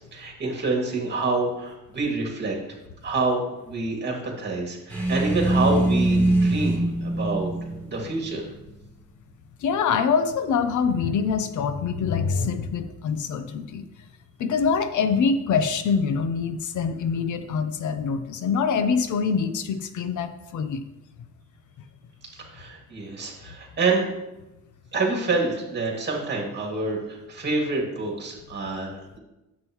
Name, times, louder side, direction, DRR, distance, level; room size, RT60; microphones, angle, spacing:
voice 1, 0.0-2.6 3.0-7.5 7.8-8.4 22.4-24.1 24.9-29.2, right 3 dB, 35° right, -1 dB, 2.5 m, -27 dB
sound 1, 4.9-8.8, right 1 dB, 5° left, 1.4 m, -23 dB
voice 2, 9.6-13.8 14.4-20.8, left 6 dB, 70° left, 10 dB, 0.8 m, -25 dB
9.8 x 7.5 x 3.1 m, 0.98 s
cardioid pair, 130°, 31 cm